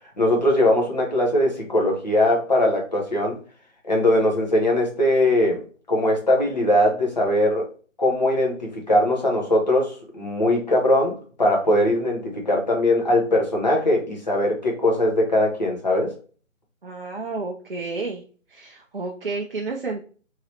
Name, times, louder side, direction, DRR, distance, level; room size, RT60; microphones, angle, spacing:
voice 1, 0.2-3.4 3.8-5.6 5.9-7.6 8.0-16.1, left 1 dB, 35° left, -1 dB, 0.8 m, -20 dB
voice 2, 16.8-18.2 18.5-20.0, right 3 dB, 45° right, 0 dB, 0.5 m, -31 dB
3.1 x 2.9 x 2.7 m, 0.40 s
figure-of-eight pair, 165°, 40 cm